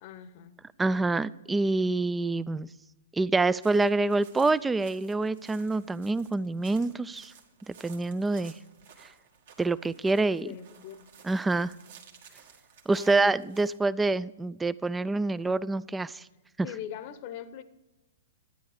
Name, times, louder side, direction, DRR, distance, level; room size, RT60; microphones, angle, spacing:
voice 1, 0.0-0.6 10.4-11.1 12.9-13.5 16.6-17.6, left 10 dB, 45° left, 14 dB, 0.8 m, -41 dB
voice 2, 0.8-2.7 3.1-7.3 7.7-8.5 9.6-10.5 11.2-11.7 12.9-16.3, right 3 dB, 10° right, 19 dB, 0.3 m, -26 dB
sound 1, 3.6-13.8, right 7 dB, 60° right, 1.7 m, -55 dB
12.5 x 9.3 x 4.9 m, 1.0 s
hypercardioid pair, 120°, 0 cm